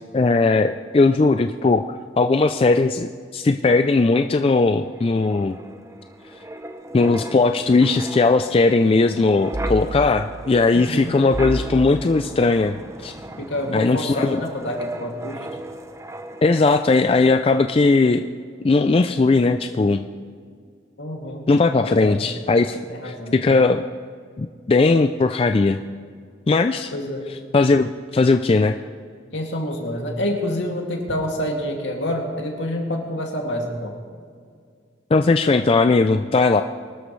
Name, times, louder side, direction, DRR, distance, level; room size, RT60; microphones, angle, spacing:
voice 1, 0.1-1.8 2.2-5.6 6.9-13.1 13.7-14.4 16.4-18.3 18.6-20.1 21.5-22.8 23.0-23.8 24.4-25.8 26.5-26.9 27.5-28.8 35.1-36.6, left 3 dB, 30° left, 8 dB, 0.3 m, -18 dB
Wind, 4.9-17.3 17.6-17.8, right 1 dB, 15° right, 0.6 m, -35 dB
voice 2, 10.7-11.2 13.4-15.5 21.0-21.4 21.8-22.2 22.9-23.4 26.9-27.3 29.3-33.9, left 1 dB, 75° left, 0 dB, 2.4 m, -27 dB
23.5 x 13.0 x 3.2 m, 2.1 s
head